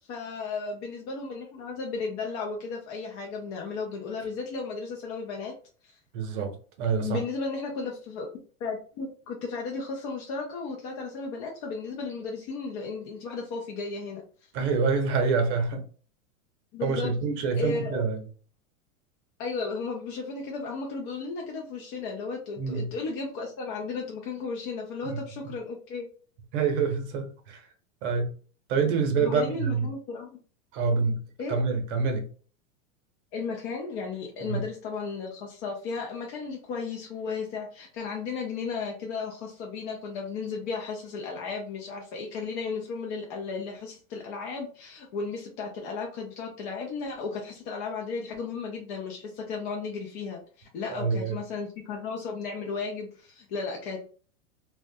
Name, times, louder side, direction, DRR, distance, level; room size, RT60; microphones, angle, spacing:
voice 1, 0.1-5.5 5.8-5.9 7.0-8.3 8.6-14.2 16.7-17.2 17.6-18.0 19.4-26.1 29.2-30.3 31.4-31.6 33.3-54.1, left 4 dB, 40° left, 0.5 m, -34 dB
voice 2, 6.1-7.2 14.5-15.8 16.8-18.2 22.6-22.9 25.0-25.2 26.5-27.6 28.0-28.3 28.7-29.9 30.7-31.2 31.5-32.3 34.4-34.6 50.9-51.4, right 5 dB, 55° right, 0.8 m, -26 dB
2.3 x 2.1 x 2.6 m
supercardioid pair, 140°, 41 cm